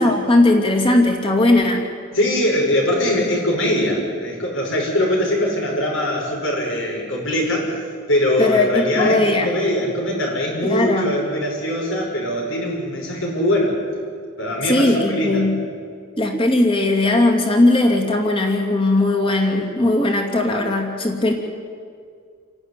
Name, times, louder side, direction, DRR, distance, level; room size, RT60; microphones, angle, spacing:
voice 1, 0.0-1.8 8.4-9.5 10.6-11.1 14.6-15.6 16.2-21.3, left 2 dB, 25° left, 1 dB, 2.7 m, -18 dB
voice 2, 2.1-7.7 8.1-13.8 14.4-15.5, left 1 dB, 70° left, -1 dB, 6.0 m, -21 dB
28.5 x 11.5 x 10.0 m, 2.2 s
head